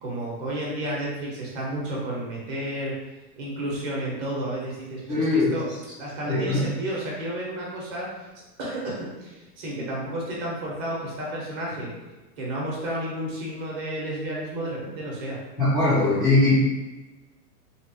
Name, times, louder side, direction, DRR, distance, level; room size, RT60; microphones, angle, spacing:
voice 1, 0.0-2.9 3.4-5.6 6.0-8.1 8.6-11.9 12.4-15.4, right 1 dB, 35° right, -4 dB, 1.0 m, -31 dB
voice 2, 5.1-5.5 6.3-6.6 15.6-16.5, left 2 dB, 5° left, -17 dB, 0.3 m, -20 dB
3.2 x 2.3 x 2.8 m, 1.1 s
hypercardioid pair, 140°, 48 cm